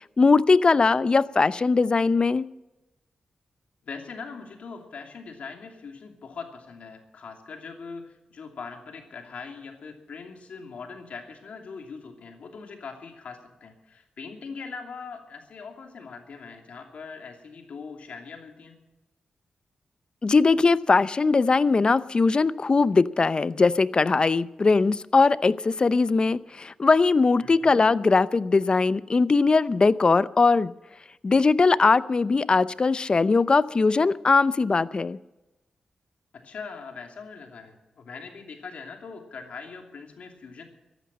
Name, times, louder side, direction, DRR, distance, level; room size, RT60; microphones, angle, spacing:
voice 1, 0.2-2.4 20.2-30.7 31.2-35.2, left 4 dB, 40° left, 17 dB, 0.6 m, -20 dB
voice 2, 3.8-18.8 27.4-27.7 36.4-40.6, left 5 dB, 75° left, 3 dB, 2.8 m, -41 dB
14.0 x 11.0 x 7.4 m, 1.0 s
cardioid pair, 60°, 2 cm